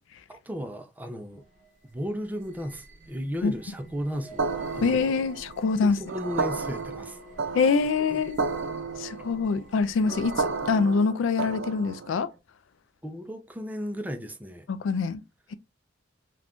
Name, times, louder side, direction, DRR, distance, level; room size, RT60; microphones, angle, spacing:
voice 1, 0.3-1.4 1.9-5.2 5.8-7.2 8.1-8.2 13.0-14.7, equal, 10° right, 0.4 m, -35 dB
sound 1, 1.3-11.0, right 2 dB, 40° right, 0.7 m, -49 dB
sound 2, 4.4-12.2, right 4 dB, 75° right, 0.5 m, -32 dB
voice 2, 4.8-6.0 7.5-8.4 9.0-12.3 14.7-15.2, left 4 dB, 75° left, 0.3 m, -25 dB
2.5 x 2.2 x 3.4 m
head